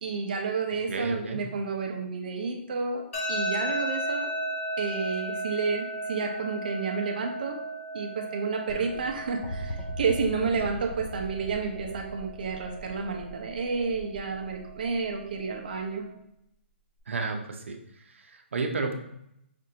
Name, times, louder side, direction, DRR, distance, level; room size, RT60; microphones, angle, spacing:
voice 1, 0.0-3.0 3.3-4.3 4.8-7.6 7.9-16.0, right 4 dB, 45° right, 3 dB, 0.6 m, -30 dB
voice 2, 0.9-1.5 10.4-10.5 17.1-18.9, right 3 dB, 80° right, 4 dB, 0.7 m, -32 dB
sound 1, 3.1-16.1, right 1 dB, 80° left, 1.4 m, -36 dB
sound 2, 8.7-15.9 17.0-17.1, equal, 30° left, 0.5 m, -40 dB
5.2 x 2.5 x 2.8 m, 0.78 s
hypercardioid pair, 175°, 7 cm